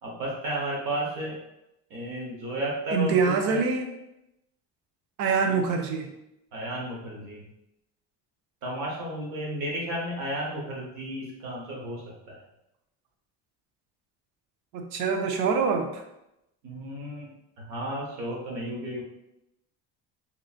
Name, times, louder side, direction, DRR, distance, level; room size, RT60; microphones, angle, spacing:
voice 1, 0.0-1.4 1.9-3.6 5.5-5.6 6.5-7.4 8.6-12.0 12.3-12.4 16.6-17.3 17.6-19.0, right 1 dB, 60° right, -3 dB, 1.0 m, -33 dB
voice 2, 2.9-3.9 5.2-6.1 14.7-16.0, right 5 dB, 90° right, 5 dB, 0.6 m, -25 dB
3.0 x 2.5 x 2.4 m, 0.87 s
cardioid pair, 175°, 34 cm